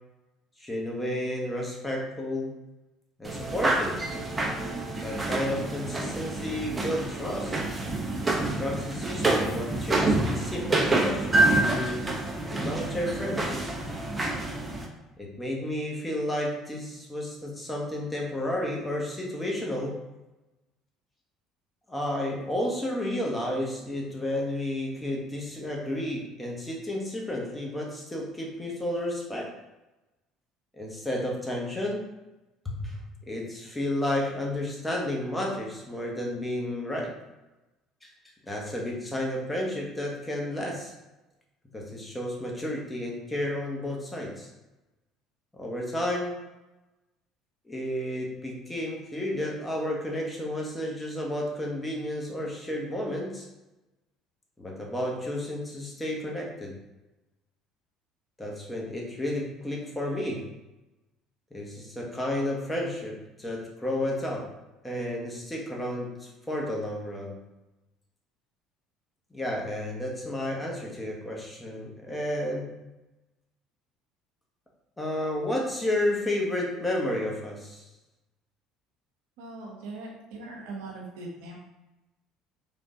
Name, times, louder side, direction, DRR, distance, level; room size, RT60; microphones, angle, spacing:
voice 1, 0.6-2.5 3.2-4.0 5.0-7.6 8.4-12.1 12.5-13.6 15.2-20.0 21.9-29.5 30.7-32.1 32.6-33.0 33.3-37.1 38.0-38.1 38.5-40.9 41.7-44.5 45.5-46.4 47.6-53.5 54.6-56.8 58.4-60.5 61.5-64.5 64.8-67.4 69.3-72.7 75.0-77.9, left 1 dB, 15° left, -1 dB, 1.1 m, -32 dB
sound 1, 3.3-14.9, right 2 dB, 20° right, 0.8 m, -27 dB
voice 2, 79.4-81.6, right 2 dB, 75° right, -2 dB, 0.9 m, -40 dB
3.6 x 2.6 x 3.6 m, 1.0 s
hypercardioid pair, 65°, 0 cm